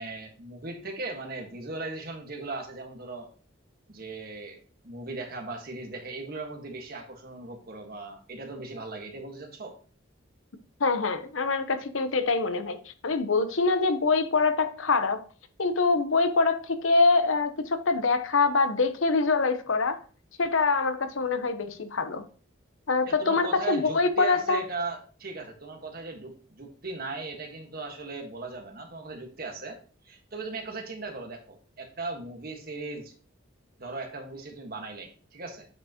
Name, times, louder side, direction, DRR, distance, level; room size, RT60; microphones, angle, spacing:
voice 1, 0.0-3.3 3.9-4.6 4.8-9.8 23.1-29.8 30.0-33.1 33.8-35.7, right 3 dB, 50° right, 1.5 m, -38 dB
voice 2, 10.8-12.8 13.0-15.2 15.6-20.0 20.4-22.2 22.9-24.6, left 4 dB, 80° left, 0.8 m, -24 dB
8.5 x 5.1 x 2.9 m
head